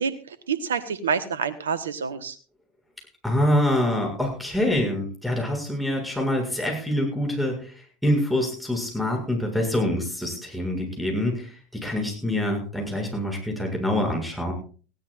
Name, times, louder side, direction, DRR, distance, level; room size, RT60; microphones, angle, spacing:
voice 1, 0.0-2.4, right 6 dB, 80° right, 14 dB, 1.3 m, -28 dB
voice 2, 3.2-14.5, left 1 dB, ahead, 0 dB, 7.3 m, -25 dB
20.0 x 16.0 x 2.6 m, 0.38 s
figure-of-eight pair, 75°, 0 cm